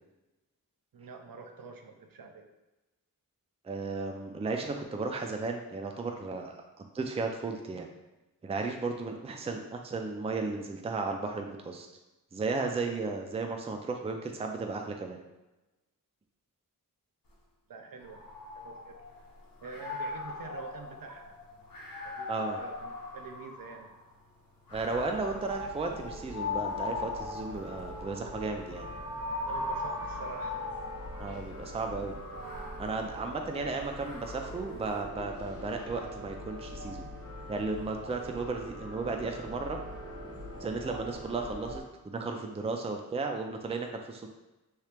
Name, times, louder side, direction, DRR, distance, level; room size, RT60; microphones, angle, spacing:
voice 1, 0.9-2.5 17.7-18.2 18.5-18.9 19.6-21.3 22.0-23.9 29.4-30.6, right 4 dB, 75° right, 4 dB, 0.5 m, -46 dB
voice 2, 3.6-7.9 8.4-11.9 12.3-15.2 22.3-22.6 24.7-28.9 31.2-32.2 32.8-37.1 37.5-39.8 40.6-44.3, right 3 dB, 20° right, 3 dB, 0.3 m, -34 dB
sound 1, 18.0-19.2 19.6-24.0 24.7-31.4 32.1-34.7, left 3 dB, 80° left, 0.8 m, -39 dB
sound 2, 24.7-41.8, equal, 45° left, 0.7 m, -43 dB
3.0 x 2.8 x 3.3 m, 1.0 s
wide cardioid pair, 85°, 35 cm